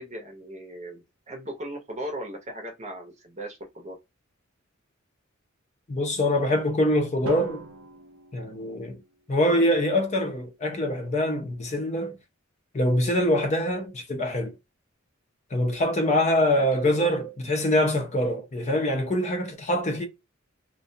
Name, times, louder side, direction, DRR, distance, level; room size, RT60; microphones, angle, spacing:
voice 1, 0.0-4.0 9.4-9.7 16.5-17.2, right 1 dB, 35° right, 0.8 m, -38 dB
voice 2, 5.9-7.6 8.3-9.0 9.3-12.2 12.7-14.5 15.5-20.1, left 1 dB, 35° left, 0.5 m, -24 dB
Drum, 7.3-9.4, right 3 dB, 85° right, 0.6 m, -39 dB
2.4 x 2.2 x 2.6 m
head